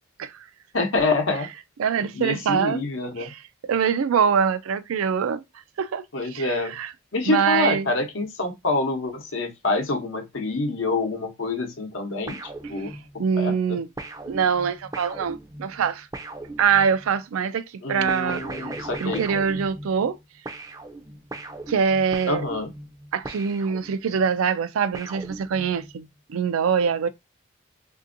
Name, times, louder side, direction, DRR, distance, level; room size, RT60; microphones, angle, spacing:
voice 1, 0.7-1.5 2.1-3.3 6.1-6.7 7.1-12.4 12.7-13.8 17.8-19.2 22.3-22.7, left 3 dB, 70° left, 0.8 m, -26 dB
voice 2, 1.8-2.8 3.2-5.4 5.8-6.9 7.3-7.9 12.8-12.9 13.2-13.9 14.3-16.1 16.6-20.2 21.7-22.4 23.1-27.1, right 6 dB, 85° right, 0.4 m, -24 dB
sound 1, 12.3-13.3 14.0-17.1 18.1-20.2 20.5-24.2 24.9-25.9, right 2 dB, 15° right, 0.4 m, -38 dB
3.4 x 2.7 x 2.5 m
head